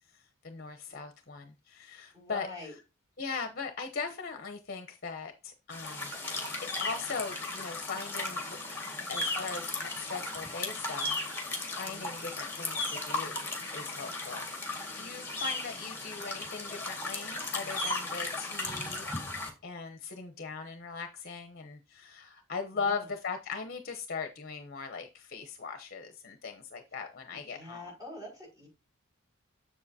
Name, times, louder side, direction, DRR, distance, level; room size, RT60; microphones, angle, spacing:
voice 1, 0.1-2.8 3.2-8.6 9.1-13.4 13.7-27.9, left 5 dB, 45° left, 0.8 m, -40 dB
voice 2, 2.1-2.7 11.9-12.2 22.8-23.1 27.3-28.7, left 1 dB, 20° right, 5.2 m, -45 dB
sound 1, 5.7-19.5, left 2 dB, 10° left, 1.8 m, -36 dB
7.5 x 7.2 x 2.7 m
head